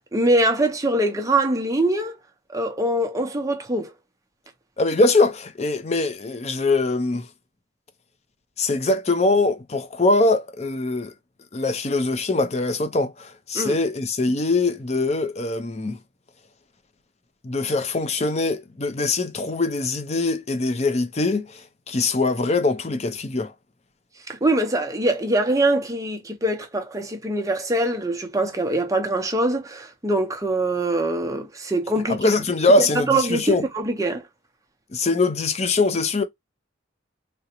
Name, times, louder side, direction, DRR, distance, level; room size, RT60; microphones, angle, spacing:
voice 1, 0.1-2.1 2.5-3.9 13.5-13.8 24.3-32.3 32.8-34.2, right 1 dB, 15° right, 0.6 m, -23 dB
voice 2, 4.8-7.3 8.6-11.1 11.5-16.0 17.4-23.5 32.1-33.6 34.9-36.2, left 2 dB, 35° left, 0.5 m, -22 dB
3.7 x 2.1 x 2.8 m
head